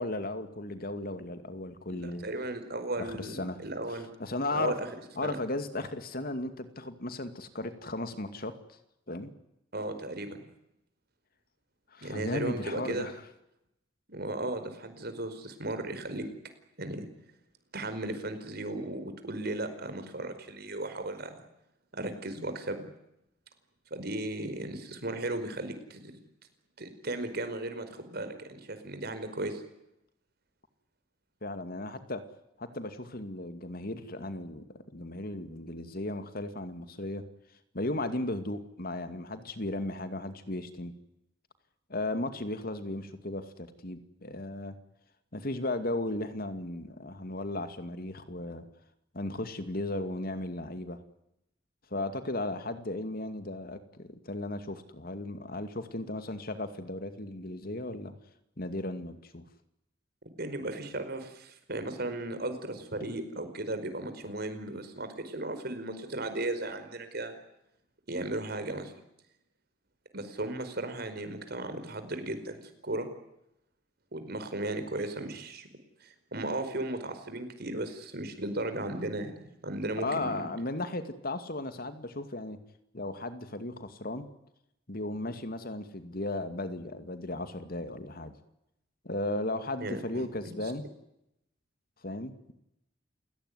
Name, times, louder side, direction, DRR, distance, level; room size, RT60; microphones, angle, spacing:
voice 1, 0.0-2.2 3.0-3.6 4.2-4.7 5.2-8.5 9.1-9.3 11.9-13.1 31.4-32.2 32.6-37.2 37.7-40.9 41.9-44.8 45.3-48.7 49.1-51.0 51.9-58.1 58.6-59.5 80.0-82.6 82.9-84.3 84.9-88.3 89.0-90.9 92.0-92.5, left 2 dB, 55° left, 10 dB, 2.4 m, -35 dB
voice 2, 1.9-4.1 4.5-4.9 5.2-5.4 9.7-10.4 12.0-13.1 14.1-16.3 16.8-17.1 17.7-21.4 21.9-22.9 23.9-26.2 26.8-29.6 60.4-67.3 68.1-68.9 70.1-73.1 74.1-75.7 76.0-79.3 79.6-80.5 89.8-90.5, right 2 dB, 55° right, 9 dB, 4.9 m, -36 dB
30.0 x 18.0 x 9.7 m, 0.83 s
head